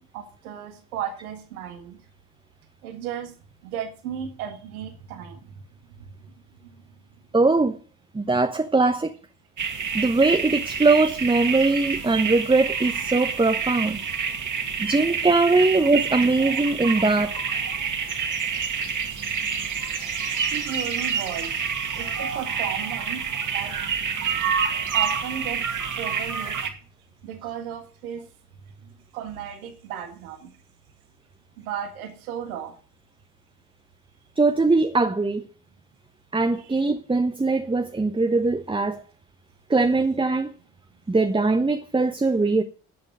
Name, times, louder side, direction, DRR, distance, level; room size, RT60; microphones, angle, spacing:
voice 1, 0.0-2.0 2.8-3.3 3.6-5.6 6.0-6.1 6.6-6.7 11.7-11.8 20.5-21.5 21.9-23.3 23.5-23.8 24.9-25.7 26.0-26.6 27.2-28.3 28.8-30.5 31.6-32.8 36.5-36.8, right 9 dB, 75° right, 2.0 m, -35 dB
voice 2, 7.3-7.8 8.1-9.1 9.9-14.0 14.8-17.3 34.4-35.4 36.3-39.0 39.7-40.5 41.1-42.6, right 3 dB, 10° right, 1.0 m, -21 dB
sound 1, 9.6-26.7, right 6 dB, 45° right, 2.4 m, -28 dB
10.5 x 8.8 x 6.2 m
figure-of-eight pair, 45°, 43 cm